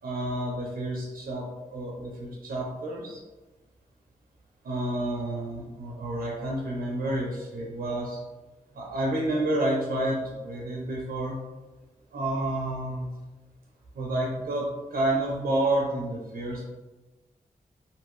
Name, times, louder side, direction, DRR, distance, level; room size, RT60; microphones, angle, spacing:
voice 1, 0.0-1.4 1.7-3.2 4.6-8.2 8.7-11.4 12.1-13.1 13.9-14.7 14.9-16.7, right 1 dB, 85° right, -3 dB, 0.6 m, -29 dB
2.7 x 2.6 x 3.1 m, 1.2 s
cardioid pair, 50°, 15 cm